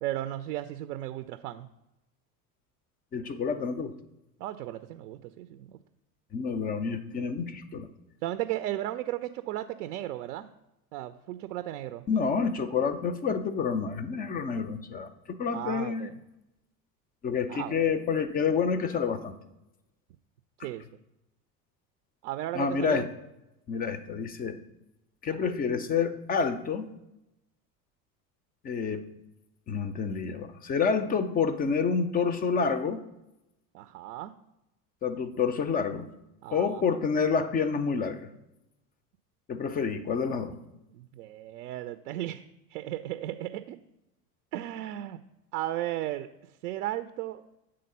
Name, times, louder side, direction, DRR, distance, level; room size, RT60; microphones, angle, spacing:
voice 1, 0.0-1.7 4.4-5.8 8.2-10.5 10.9-12.0 15.5-16.2 17.5-17.7 20.6-20.8 22.2-23.1 25.3-25.5 33.7-34.3 36.4-36.8 40.9-42.4 42.7-43.8 44.5-45.2 45.5-46.3 46.6-47.4, right 14 dB, 70° right, 11 dB, 0.5 m, -35 dB
voice 2, 3.1-3.9 6.3-7.9 12.1-16.1 17.2-19.3 22.5-23.1 23.7-24.6 25.2-26.9 28.6-29.1 29.7-33.0 35.0-36.1 36.5-38.3 39.5-40.5, left 5 dB, 20° left, 12 dB, 0.4 m, -28 dB
7.7 x 3.8 x 5.3 m, 0.93 s
hypercardioid pair, 75°, 48 cm